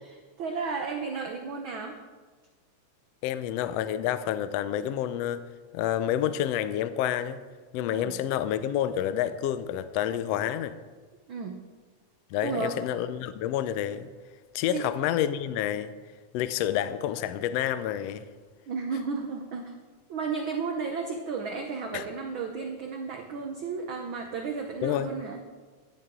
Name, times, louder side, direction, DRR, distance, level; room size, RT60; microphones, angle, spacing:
voice 1, 0.0-2.0 7.9-8.1 11.3-11.6 12.4-12.9 14.7-14.9 18.7-19.7 20.1-25.4, right 5 dB, 75° right, 4 dB, 1.1 m, -33 dB
voice 2, 3.2-5.4 5.7-7.4 7.7-10.8 12.3-14.1 14.5-15.9 16.3-18.3 21.9-22.0 24.8-25.1, left 11 dB, 80° left, 12 dB, 1.5 m, -29 dB
15.0 x 11.0 x 3.7 m, 1.4 s
omnidirectional pair, 3.4 m